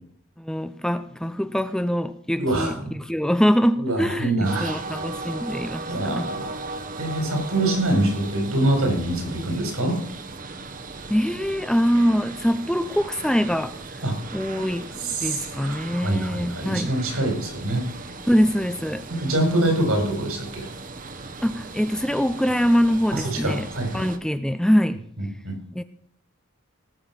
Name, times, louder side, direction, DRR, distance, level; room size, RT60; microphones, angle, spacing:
voice 1, 0.4-6.3 11.1-14.0 14.3-16.9 18.3-19.1 21.4-23.7 23.9-25.0 25.7-25.8, equal, 5° left, 11 dB, 0.4 m, -23 dB
voice 2, 2.4-2.9 3.8-4.7 5.9-6.5 7.0-10.0 14.0-14.1 15.0-17.8 19.1-20.7 23.1-24.0 25.2-25.6, right 1 dB, 80° right, 4 dB, 4.5 m, -25 dB
sound 1, 4.4-24.2, right 3 dB, 40° right, 1.0 m, -37 dB
18.5 x 6.9 x 5.9 m, 0.67 s
head